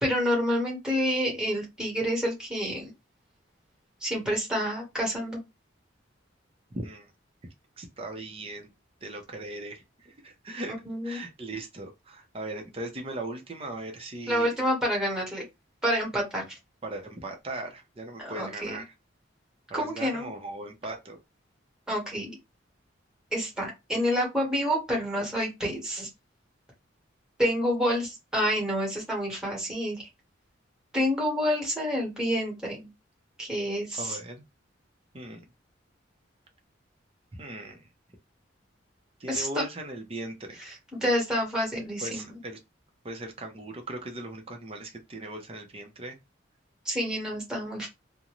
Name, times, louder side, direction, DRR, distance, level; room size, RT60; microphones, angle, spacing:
voice 1, 0.0-2.9 4.0-5.4 10.8-11.2 14.3-15.4 15.8-16.6 18.2-18.8 19.7-20.3 21.9-22.4 23.3-26.1 27.4-30.1 30.9-32.9 33.4-34.2 39.3-39.6 40.6-42.3 46.8-47.9, equal, 5° right, 1.2 m, -28 dB
voice 2, 6.7-7.1 7.8-8.7 9.0-10.7 11.0-14.6 16.8-18.9 19.7-21.2 34.0-34.4 35.1-35.4 37.3-37.9 39.2-40.6 42.0-42.6 43.0-46.2, right 2 dB, 30° right, 0.6 m, -38 dB
2.5 x 2.1 x 3.0 m
head